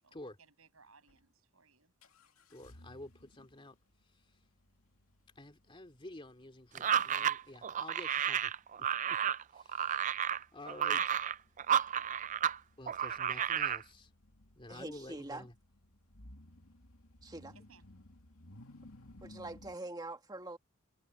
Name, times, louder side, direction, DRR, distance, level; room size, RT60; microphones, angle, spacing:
voice 1, 0.0-1.9 17.5-17.8, right 4 dB, 75° right, 7.8 m, -64 dB
sound 1, 1.1-1.2 2.0-19.8, left 1 dB, 80° left, 2.5 m, -60 dB
voice 2, 2.5-3.7 5.4-8.5 8.8-8.9 9.5-11.2 12.8-14.1 14.5-15.5, left 1 dB, 25° left, 2.6 m, -50 dB
sound 2, 6.8-12.6 12.9-13.8, right 9 dB, 35° right, 0.4 m, -32 dB
voice 3, 14.7-15.5 17.2-17.5 19.2-20.6, right 2 dB, 20° right, 2.0 m, -44 dB
head